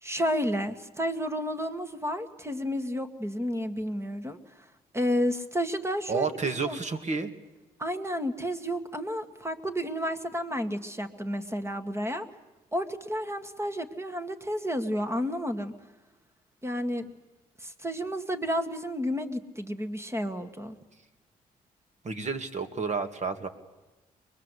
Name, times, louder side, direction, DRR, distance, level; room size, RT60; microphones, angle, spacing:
voice 1, 0.0-4.4 4.9-6.3 6.6-6.8 7.8-12.3 12.7-15.7 16.6-17.1 17.6-20.8, equal, 15° right, 9 dB, 2.0 m, -31 dB
voice 2, 6.1-7.3 22.0-23.5, right 4 dB, 45° right, 8 dB, 2.3 m, -30 dB
24.0 x 21.0 x 8.3 m, 1.1 s
cardioid pair, 75°, 16 cm